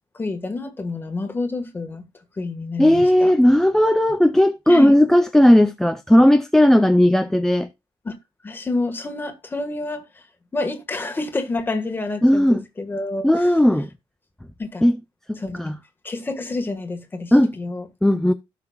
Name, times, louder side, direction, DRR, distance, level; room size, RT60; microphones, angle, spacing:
voice 1, 0.1-2.1 2.4-3.3 4.7-5.0 8.0-8.2 8.4-10.2 10.5-13.5 14.6-14.9 15.4-15.7 16.0-17.9, left 2 dB, 20° left, 1.5 m, -28 dB
voice 2, 2.8-7.7 12.2-12.6 13.2-13.9 14.8-15.0 15.3-15.8 17.3-17.5 18.0-18.3, left 1 dB, 5° left, 0.4 m, -16 dB
17.5 x 5.8 x 2.3 m
wide cardioid pair, 165°, 10 cm